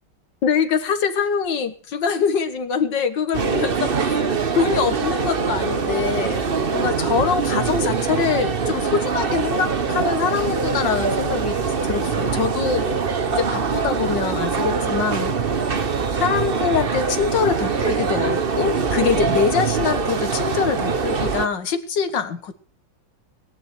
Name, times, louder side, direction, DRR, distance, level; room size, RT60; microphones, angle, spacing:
voice 1, 0.4-11.6 11.8-12.8 13.3-15.3 16.2-22.5, left 6 dB, 75° left, 10 dB, 2.1 m, -24 dB
sound 1, 3.3-21.5, right 5 dB, 35° right, 1.1 m, -23 dB
18.5 x 11.0 x 6.2 m, 0.41 s
omnidirectional pair, 2.0 m